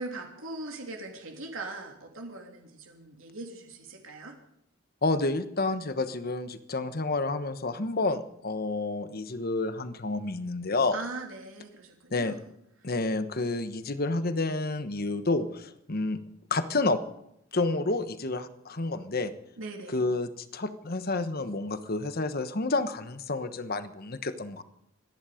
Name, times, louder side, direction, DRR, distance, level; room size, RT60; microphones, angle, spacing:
voice 1, 0.0-4.3 10.9-12.4 12.8-12.9 19.6-20.0, right 2 dB, 90° right, 2 dB, 3.1 m, -40 dB
voice 2, 5.0-11.0 12.1-12.3 12.8-16.2 16.5-17.0 17.5-19.3 19.9-24.6, left 2 dB, 50° left, 11 dB, 1.2 m, -29 dB
26.5 x 10.5 x 5.1 m, 0.76 s
head